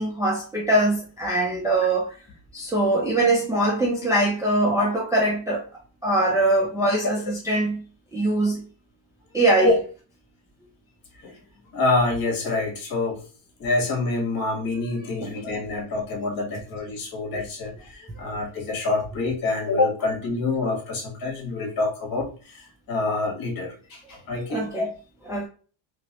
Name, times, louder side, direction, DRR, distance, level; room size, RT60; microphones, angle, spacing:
voice 1, 0.0-2.1 2.5-5.6 6.0-7.8 8.1-8.6 9.3-9.8 15.2-15.3 24.5-24.9 25.2-25.5, right 1 dB, 5° right, 0.5 m, -22 dB
voice 2, 11.7-13.2 13.6-24.8, left 2 dB, 45° left, 1.6 m, -26 dB
3.1 x 2.9 x 2.9 m
cardioid pair, 140°, 48 cm